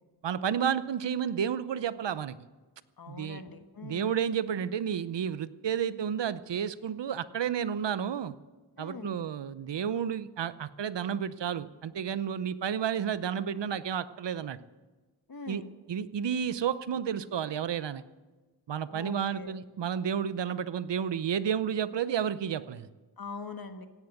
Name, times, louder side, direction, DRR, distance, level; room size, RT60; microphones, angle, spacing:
voice 1, 0.2-2.4 3.1-3.4 3.8-8.3 8.8-14.6 15.5-15.6 15.9-18.0 18.7-22.9, right 8 dB, 75° right, 15 dB, 0.8 m, -31 dB
voice 2, 3.0-4.1 8.8-9.2 15.3-15.7 18.9-19.6 23.2-23.9, left 4 dB, 55° left, 8 dB, 1.5 m, -43 dB
16.5 x 10.5 x 7.9 m, 1.3 s
wide cardioid pair, 100°, 43 cm